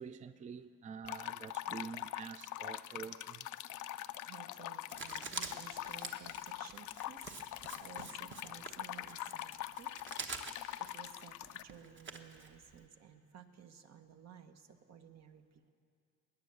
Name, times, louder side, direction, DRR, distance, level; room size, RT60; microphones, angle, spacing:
voice 1, 0.0-3.5, right 6 dB, 25° right, 0.3 m, -47 dB
sound 1, 1.0-11.6, left 13 dB, 75° left, 0.5 m, -43 dB
voice 2, 4.2-9.9 10.8-15.7, right 8 dB, 60° right, 1.1 m, -56 dB
Writing, 4.9-12.9, right 4 dB, 40° right, 1.1 m, -47 dB
20.0 x 9.6 x 6.9 m
cardioid pair, 90°, 30 cm